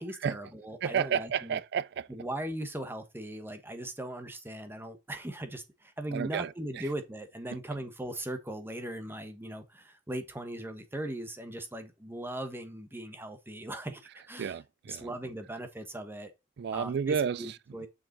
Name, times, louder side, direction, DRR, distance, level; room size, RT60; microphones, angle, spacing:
voice 1, 0.0-1.6 2.1-14.5 14.9-16.3 16.7-17.9, right 1 dB, 10° right, 1.3 m, -39 dB
voice 2, 0.8-2.1 6.1-6.9 14.4-15.1 16.6-17.9, right 7 dB, 60° right, 0.4 m, -32 dB
7.0 x 5.9 x 4.0 m
head